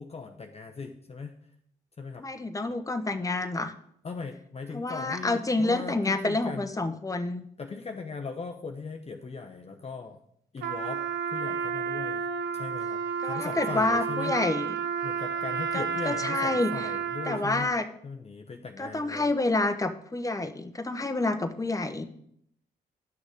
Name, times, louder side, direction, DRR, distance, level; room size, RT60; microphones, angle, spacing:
voice 1, 0.0-1.3 2.0-2.2 4.0-6.7 7.6-10.2 10.5-11.0 11.3-12.2 12.5-14.3 15.0-17.7 18.0-19.3, left 4 dB, 35° left, 4 dB, 0.9 m, -39 dB
voice 2, 2.2-3.7 4.7-7.4 13.2-14.7 15.7-16.7 17.3-17.9 18.8-22.0, left 2 dB, 20° left, 7 dB, 1.1 m, -28 dB
Trumpet, 10.6-17.6, right 6 dB, 75° right, 0.9 m, -31 dB
10.5 x 6.3 x 5.0 m, 0.70 s
hypercardioid pair, 50°, 18 cm